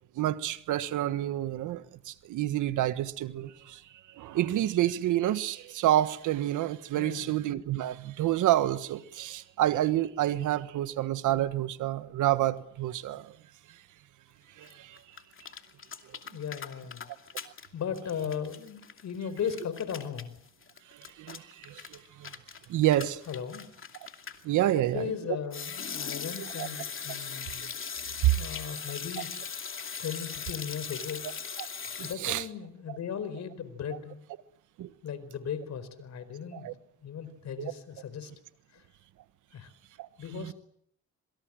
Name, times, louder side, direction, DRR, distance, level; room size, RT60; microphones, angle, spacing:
voice 1, 0.1-3.8 4.1-13.3 14.6-15.0 20.9-22.3 22.7-23.2 24.4-25.1 26.6-26.7 28.2-28.3 31.6-31.7 32.0-32.4 34.8-34.9 36.5-36.7 37.6-37.7 40.0-40.1 40.3-40.5, right 13 dB, 85° right, 1.5 m, -28 dB
voice 2, 6.9-7.3 16.3-17.0 17.7-20.3 23.3-23.6 24.7-27.7 28.3-29.3 30.0-31.2 32.0-34.2 35.0-36.7 37.0-38.3 38.7-38.8 39.5-39.7 40.2-40.5, left 7 dB, 65° left, 4.6 m, -37 dB
sound 1, 14.6-14.7 15.0-17.7 17.9-24.4 25.5-32.1, left 6 dB, 45° left, 2.6 m, -40 dB
26.5 x 23.5 x 7.6 m
cardioid pair, 90°, 30 cm